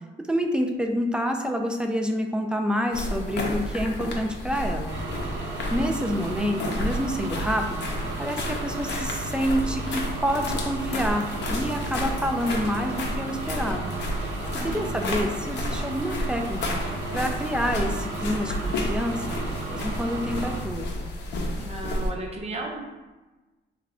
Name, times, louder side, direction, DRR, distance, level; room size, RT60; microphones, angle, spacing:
voice 1, 0.3-5.0 5.4-7.9 8.2-14.0 14.6-16.8 17.1-19.4 19.7-20.8, equal, 5° right, 3 dB, 0.3 m, -28 dB
sound 1, 2.9-22.1, left 1 dB, 60° left, 0.7 m, -31 dB
sound 2, 4.9-20.6, right 3 dB, 80° right, 0.7 m, -35 dB
voice 2, 14.5-15.0 21.6-22.8, right 2 dB, 30° right, 0 dB, 0.7 m, -35 dB
3.1 x 2.3 x 3.6 m, 1.2 s
cardioid pair, 90°, 20 cm